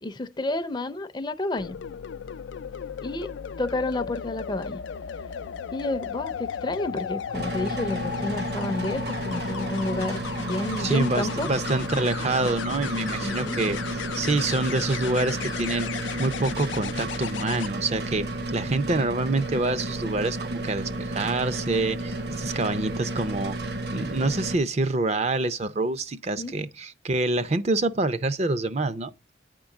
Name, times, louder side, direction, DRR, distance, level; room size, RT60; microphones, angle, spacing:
voice 1, 0.0-1.8 3.0-4.8 5.7-11.5 13.2-13.6 21.2-21.3 26.4-26.6, left 2 dB, 25° left, 0.5 m, -30 dB
sound 1, 1.6-17.7 19.6-19.9, left 7 dB, 80° left, 0.4 m, -35 dB
sound 2, 7.3-24.6, right 2 dB, 60° right, 1.1 m, -32 dB
voice 2, 10.8-13.8 14.1-18.3 18.5-23.6 23.9-29.1, right 2 dB, 35° right, 0.5 m, -26 dB
9.6 x 3.8 x 7.1 m
head